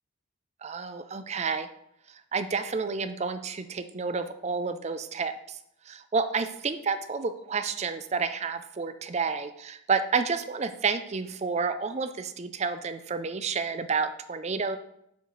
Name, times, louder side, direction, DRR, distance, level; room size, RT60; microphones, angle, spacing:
voice 1, 0.6-1.7 2.1-5.6 5.9-14.8, right 5 dB, 35° right, 10 dB, 0.4 m, -30 dB
6.9 x 4.7 x 3.9 m, 0.76 s
head